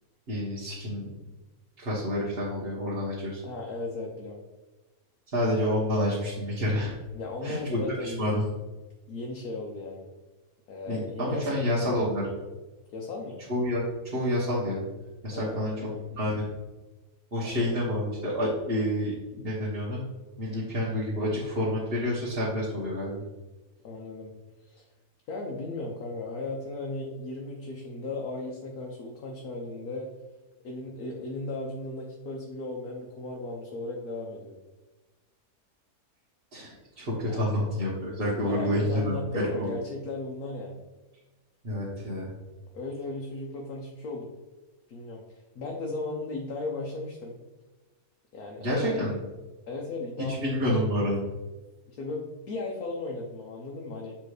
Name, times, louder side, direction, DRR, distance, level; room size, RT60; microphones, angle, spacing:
voice 1, 0.3-1.0 1.8-3.4 5.3-7.0 7.4-8.4 10.9-12.2 13.5-13.8 14.1-14.8 15.2-15.7 16.2-16.3 17.3-20.0 20.4-23.2 36.5-39.8 41.6-42.3 48.6-49.1 50.3-51.2, left 1 dB, 40° right, -7 dB, 1.4 m, -28 dB
voice 2, 3.4-4.4 7.1-8.3 9.1-10.1 10.7-11.9 12.9-13.4 15.3-16.1 17.4-17.8 23.8-24.8 25.3-30.1 30.6-34.6 37.3-37.6 38.3-40.8 42.7-44.3 44.9-45.2 45.5-47.4 48.3-49.1 49.7-50.7 51.9-54.2, left 2 dB, 75° left, -1 dB, 1.4 m, -36 dB
7.0 x 3.4 x 4.8 m, 1.2 s
omnidirectional pair, 1.6 m